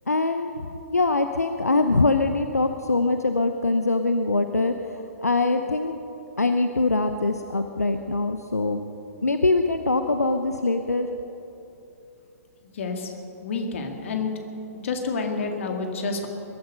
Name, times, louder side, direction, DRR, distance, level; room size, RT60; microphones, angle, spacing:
voice 1, 0.1-4.7 5.2-6.0 6.4-8.8 9.2-11.1, left 3 dB, 85° left, 7 dB, 0.7 m, -23 dB
voice 2, 12.7-13.1 13.4-14.3 14.8-16.3, left 4 dB, 55° left, 4 dB, 2.2 m, -28 dB
22.0 x 11.5 x 5.5 m, 3.0 s
figure-of-eight pair, 115°, 8 cm